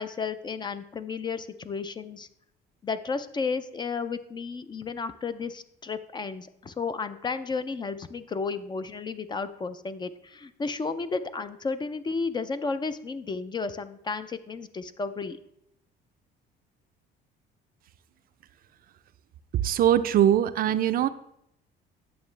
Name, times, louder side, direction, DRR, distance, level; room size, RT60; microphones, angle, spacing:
voice 1, 0.0-2.3 2.8-15.4, left 4 dB, 25° left, 12 dB, 0.4 m, -33 dB
voice 2, 19.5-21.1, right 10 dB, 50° right, 12 dB, 0.4 m, -22 dB
9.4 x 7.0 x 3.2 m, 0.78 s
cardioid pair, 130°, 19 cm